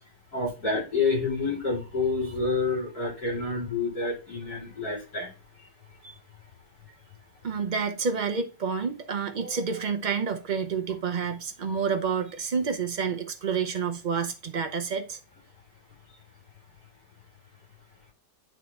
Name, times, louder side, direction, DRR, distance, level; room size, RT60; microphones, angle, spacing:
voice 1, 0.3-5.3, left 3 dB, 60° left, 4.4 m, -28 dB
voice 2, 7.4-15.2, right 6 dB, 60° right, 0.5 m, -29 dB
9.1 x 4.1 x 3.5 m
omnidirectional pair, 1.9 m